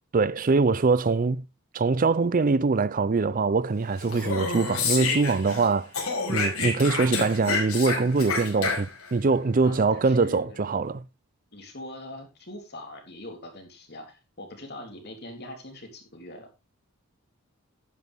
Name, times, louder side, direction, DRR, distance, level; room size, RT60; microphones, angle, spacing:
voice 1, 0.1-1.4 1.7-5.9 6.3-8.9 9.1-11.0, right 4 dB, 40° right, 0.5 m, -23 dB
Speech, 4.0-5.7 5.9-9.1, left 4 dB, 85° left, 5.1 m, -29 dB
voice 2, 8.6-8.9 9.6-10.8 11.5-16.6, left 1 dB, 50° left, 3.3 m, -42 dB
11.5 x 9.6 x 3.5 m
head